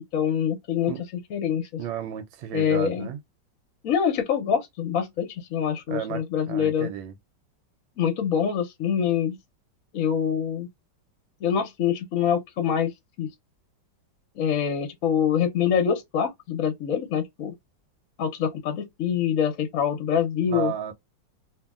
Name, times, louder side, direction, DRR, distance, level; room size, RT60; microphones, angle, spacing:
voice 1, 0.1-0.9 1.3-1.8 2.5-3.1 3.8-6.9 8.0-9.4 9.9-10.7 11.4-12.9 13.2-13.3 14.3-17.5 18.2-20.7, left 8 dB, 60° left, 0.9 m, -25 dB
voice 2, 1.8-3.2 5.9-7.2 20.5-20.9, right 10 dB, 90° right, 1.3 m, -33 dB
2.8 x 2.6 x 2.3 m
omnidirectional pair, 2.1 m